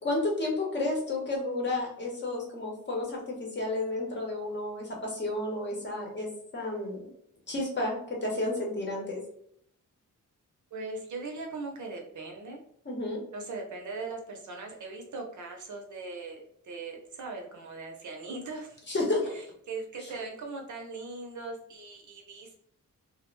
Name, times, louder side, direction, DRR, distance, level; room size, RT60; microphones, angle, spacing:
voice 1, 0.0-6.3 6.5-7.1 7.5-9.2 12.9-13.2 18.9-19.3 20.0-20.1, left 2 dB, 35° left, -2 dB, 0.8 m, -31 dB
voice 2, 10.7-12.6 13.3-18.8 19.3-22.5, right 3 dB, 65° right, 2 dB, 0.7 m, -40 dB
2.5 x 2.1 x 3.0 m, 0.68 s
wide cardioid pair, 175°, 32 cm